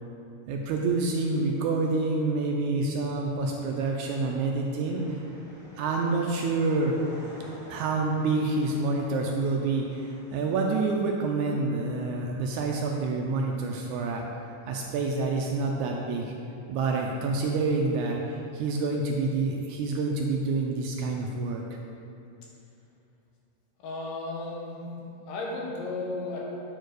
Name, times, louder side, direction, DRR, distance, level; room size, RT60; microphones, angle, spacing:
voice 1, 0.5-5.2 5.8-7.0 7.7-14.2 14.7-16.3 16.7-21.6, right 3 dB, 80° right, 1 dB, 1.8 m, -27 dB
sound 1, 4.8-11.5, equal, 25° right, 1.7 m, -50 dB
voice 2, 23.8-24.9 25.3-26.4, left 2 dB, 80° left, -3 dB, 2.9 m, -34 dB
9.1 x 4.5 x 4.7 m, 2.7 s
omnidirectional pair, 3.8 m